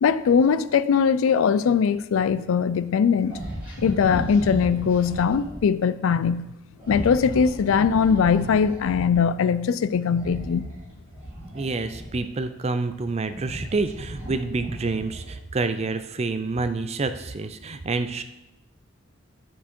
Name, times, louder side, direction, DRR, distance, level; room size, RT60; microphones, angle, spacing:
voice 1, 0.0-3.4 3.8-6.5 6.9-10.7, left 6 dB, 75° left, 0.3 m, -21 dB
sound 1, 3.3-5.6 6.8-9.1 10.1-12.4 13.0-15.4, right 1 dB, 10° right, 2.9 m, -35 dB
voice 2, 11.5-18.2, right 3 dB, 30° right, 0.4 m, -28 dB
9.9 x 4.6 x 4.4 m
head